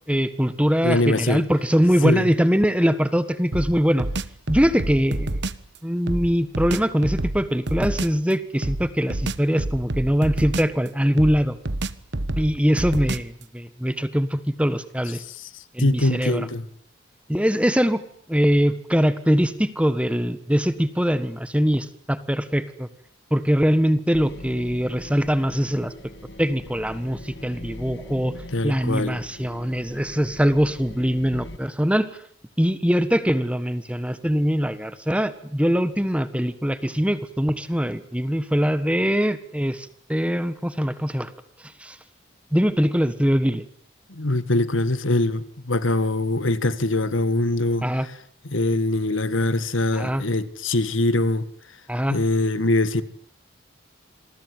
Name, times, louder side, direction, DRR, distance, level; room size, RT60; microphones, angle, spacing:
voice 1, 0.1-4.1 4.5-5.4 5.8-11.6 12.4-15.2 15.7-16.5 17.3-18.0 18.3-22.9 23.3-25.9 26.4-28.3 28.6-32.1 32.6-41.3 41.8-42.0 42.5-43.6 47.8-48.1 49.9-50.2 51.9-52.2, equal, 5° right, 1.5 m, -22 dB
voice 2, 0.8-1.5 2.0-2.3 15.3-16.7 28.5-29.2 44.1-48.1 48.4-51.5 52.1-53.0, left 2 dB, 80° left, 1.8 m, -23 dB
sound 1, 3.5-5.7 6.1-8.2 8.6-10.9 11.2-13.4, right 1 dB, 60° right, 1.3 m, -28 dB
sound 2, 24.1-31.6, left 1 dB, 60° left, 2.3 m, -41 dB
27.5 x 21.5 x 9.6 m
head